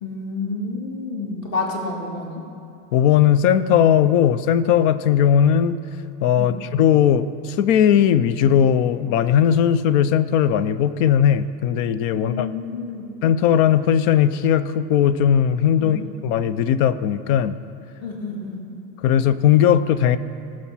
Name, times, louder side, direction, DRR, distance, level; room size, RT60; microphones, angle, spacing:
voice 1, 0.0-2.4 6.4-6.6 12.2-13.1 15.8-16.0 18.0-18.6, left 3 dB, 40° left, -1 dB, 2.2 m, -29 dB
voice 2, 2.9-5.8 6.2-12.5 13.2-17.6 19.0-20.2, left 9 dB, 85° left, 14 dB, 0.7 m, -18 dB
19.0 x 6.4 x 5.7 m, 2.7 s
cardioid pair, 160°, 38 cm